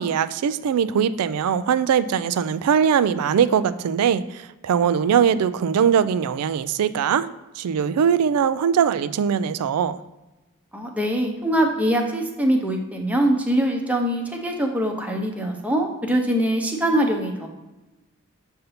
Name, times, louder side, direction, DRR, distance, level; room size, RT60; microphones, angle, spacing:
voice 1, 0.0-7.3 7.6-10.0, right 7 dB, 85° right, 0.3 m, -21 dB
voice 2, 10.7-17.5, right 1 dB, 5° right, 0.7 m, -23 dB
6.6 x 2.7 x 5.7 m
head